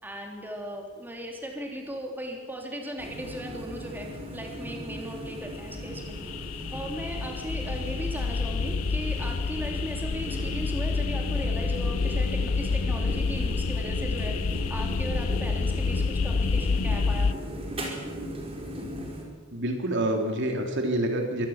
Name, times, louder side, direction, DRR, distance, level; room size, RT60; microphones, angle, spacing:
voice 1, 0.0-4.1 4.3-6.1 6.7-17.4, equal, 10° right, 1 dB, 3.4 m, -37 dB
sound 1, 3.0-19.2, equal, 30° right, 4.6 m, -38 dB
sound 2, 5.3-17.3, left 4 dB, 90° left, 0.6 m, -28 dB
voice 2, 19.5-21.5, right 1 dB, 60° right, 3 dB, 3.2 m, -27 dB
23.5 x 17.0 x 7.3 m, 1.3 s
head